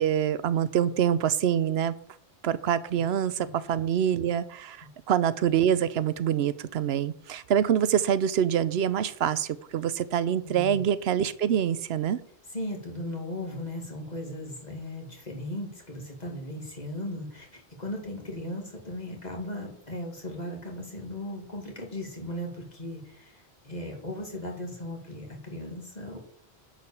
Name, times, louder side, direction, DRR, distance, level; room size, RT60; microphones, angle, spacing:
voice 1, 0.0-2.0 2.4-12.2, right 9 dB, 85° right, 16 dB, 0.9 m, -25 dB
voice 2, 10.4-10.8 12.5-26.2, left 1 dB, 45° left, 0 dB, 2.5 m, -37 dB
10.0 x 5.0 x 7.1 m, 0.63 s
omnidirectional pair, 1.0 m